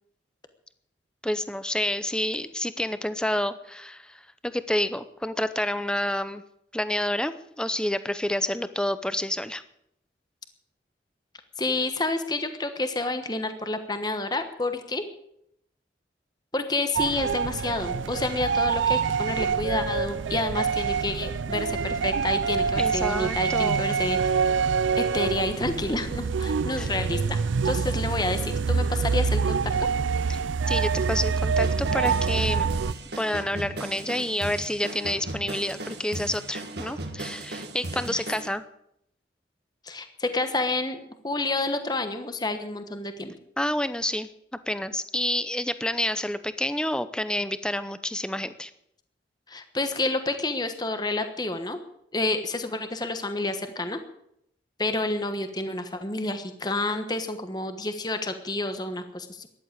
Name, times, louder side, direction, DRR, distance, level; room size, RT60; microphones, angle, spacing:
voice 1, 1.2-6.4 6.7-9.6 22.8-23.8 26.8-26.9 30.3-30.4 30.7-32.8 33.2-38.6 43.6-44.3 44.7-48.7, left 1 dB, 5° left, 13 dB, 0.7 m, -29 dB
voice 2, 11.6-15.0 16.5-24.5 25.0-27.4 27.6-29.6 38.0-38.2 39.8-41.0 41.2-43.3 49.5-51.8 52.1-54.0 54.8-59.5, left 2 dB, 20° left, 8 dB, 1.2 m, -29 dB
sound 1, 16.9-32.9, right 5 dB, 80° right, 0.5 m, -26 dB
sound 2, 31.6-38.5, right 2 dB, 60° right, 1.9 m, -37 dB
14.0 x 11.0 x 8.7 m, 0.77 s
head